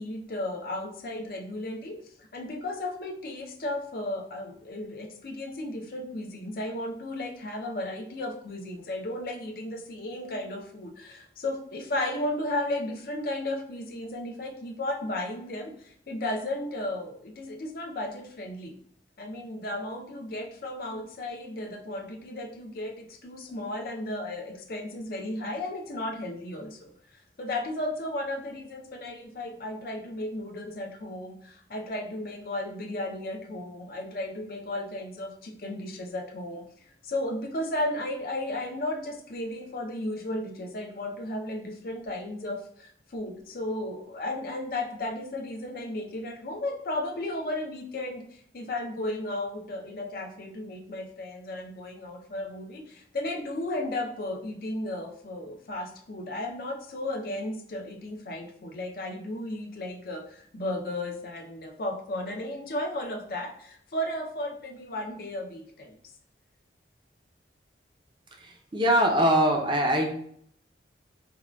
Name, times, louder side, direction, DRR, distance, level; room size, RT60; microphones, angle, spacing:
voice 1, 0.0-18.8 19.2-26.9 27.4-36.7 37.0-66.0, left 1 dB, 55° left, 3 dB, 0.5 m, -34 dB
voice 2, 68.7-70.1, equal, 25° right, 1 dB, 0.5 m, -22 dB
4.7 x 2.2 x 2.2 m, 0.65 s
head